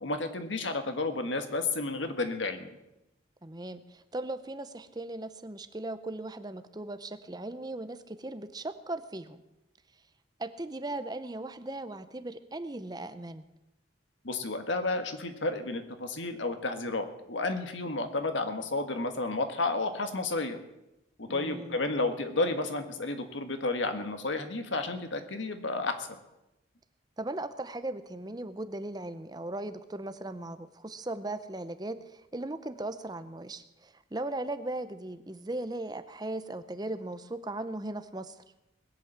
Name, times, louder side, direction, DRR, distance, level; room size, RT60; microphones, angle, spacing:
voice 1, 0.0-2.7 14.2-20.6 21.2-26.2, left 2 dB, 85° left, 7 dB, 1.6 m, -31 dB
voice 2, 3.4-9.4 10.4-13.4 21.3-21.8 27.2-38.4, right 2 dB, 20° right, 11 dB, 0.7 m, -38 dB
20.0 x 8.4 x 7.3 m, 0.93 s
head